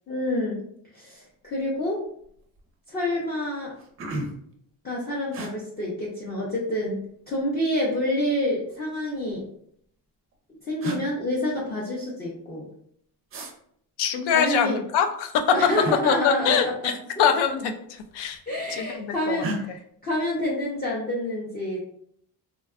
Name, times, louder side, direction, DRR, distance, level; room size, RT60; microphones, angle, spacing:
voice 1, 0.1-0.6 0.9-2.0 2.9-3.7 4.8-9.5 10.6-12.7 14.3-14.8 15.5-16.9 18.5-21.8, left 1 dB, 25° left, -5 dB, 0.5 m, -28 dB
sound 1, 1.6-1.9 2.2-2.7 3.2-3.3 3.6-4.5 5.3-5.5 6.8-7.4 8.6-9.4 10.3-10.4 10.8-11.0 13.3-13.5 15.8-16.0 17.4-17.6 17.9-18.5 19.4-19.6, right 1 dB, 35° right, 0.4 m, -34 dB
voice 2, 14.0-15.5 16.1-16.9 17.2-18.4 18.7-19.4, left 7 dB, 90° left, 6 dB, 0.5 m, -24 dB
3.5 x 2.2 x 2.3 m, 0.68 s
cardioid pair, 155°, 39 cm